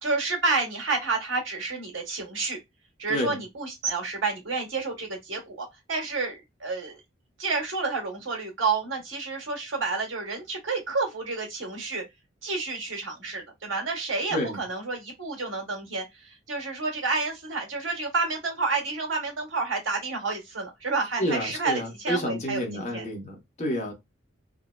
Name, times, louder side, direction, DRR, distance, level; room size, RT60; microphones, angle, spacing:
voice 1, 0.0-2.6 3.0-7.0 7.4-12.0 12.4-23.1 23.7-23.9, right 3 dB, 90° right, 1.4 m, -30 dB
voice 2, 21.2-23.9, equal, 35° left, 1.0 m, -29 dB
3.7 x 2.0 x 2.2 m
head